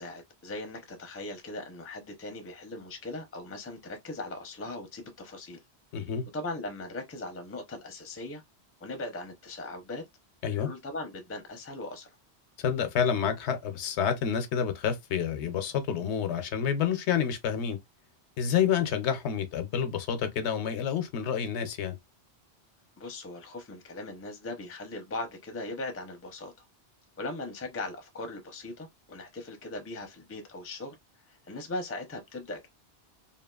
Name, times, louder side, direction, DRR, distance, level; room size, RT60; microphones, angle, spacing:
voice 1, 0.0-5.6 6.3-8.4 8.8-10.0 10.5-12.2 23.0-26.6 27.2-31.0 31.3-32.7, left 2 dB, 20° left, 0.4 m, -39 dB
voice 2, 5.9-6.2 10.4-10.7 12.6-17.8 18.4-22.0, left 8 dB, 85° left, 0.9 m, -28 dB
2.8 x 2.4 x 2.3 m
omnidirectional pair, 1.1 m